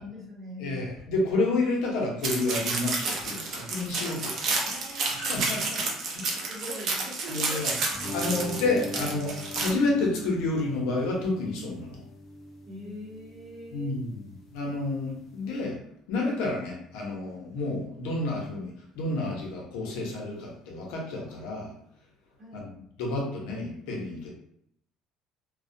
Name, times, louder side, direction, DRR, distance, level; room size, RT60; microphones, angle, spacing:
voice 1, 0.0-0.7 4.6-5.7 6.5-7.7 12.7-14.0 22.4-22.7, equal, 35° right, -4 dB, 0.9 m, -43 dB
voice 2, 0.6-6.2 7.3-7.7 8.1-12.0 13.7-15.8 16.1-21.7 22.5-22.7 23.0-24.3, left 2 dB, 85° left, -2 dB, 0.7 m, -30 dB
sound 1, 2.2-9.7, right 3 dB, 55° right, 0.5 m, -30 dB
sound 2, 7.9-15.6, equal, 45° left, 0.5 m, -41 dB
2.3 x 2.1 x 2.6 m, 0.71 s
cardioid pair, 120°, 0 cm